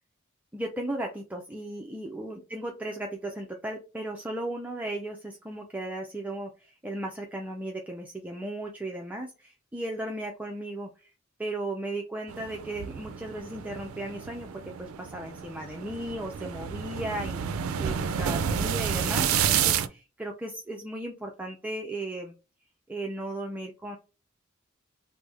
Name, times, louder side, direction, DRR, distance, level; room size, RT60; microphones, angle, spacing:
voice 1, 0.5-11.1 11.4-22.3 22.9-24.0, right 1 dB, 5° right, 1 dB, 0.4 m, -36 dB
sound 1, 12.3-19.9, right 8 dB, 85° right, 0.4 m, -30 dB
3.3 x 2.0 x 3.3 m, 0.31 s
head